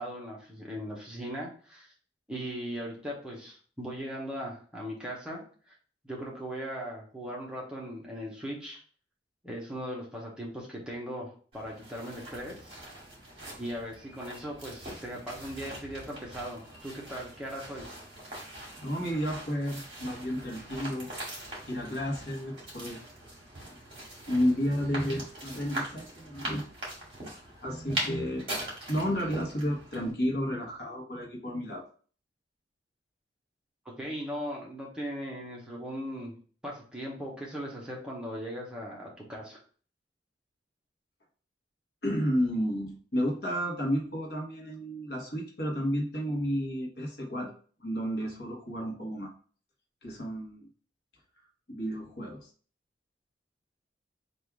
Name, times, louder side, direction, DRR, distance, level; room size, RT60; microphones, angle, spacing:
voice 1, 0.0-1.9 2.3-5.4 5.7-5.8 6.0-8.8 9.4-12.7 13.6-17.9 33.8-36.3 36.6-39.6, equal, 5° right, -3 dB, 0.9 m, -38 dB
sound 1, 11.5-30.1, right 1 dB, 30° right, 2.0 m, -42 dB
voice 2, 18.8-21.1 21.6-23.0 23.7-23.8 24.3-26.6 27.6-28.5 28.9-31.8 42.0-47.5 47.8-49.3 50.0-50.7 51.7-52.5, equal, 60° left, 0 dB, 1.1 m, -31 dB
3.6 x 2.6 x 4.6 m, 0.42 s
head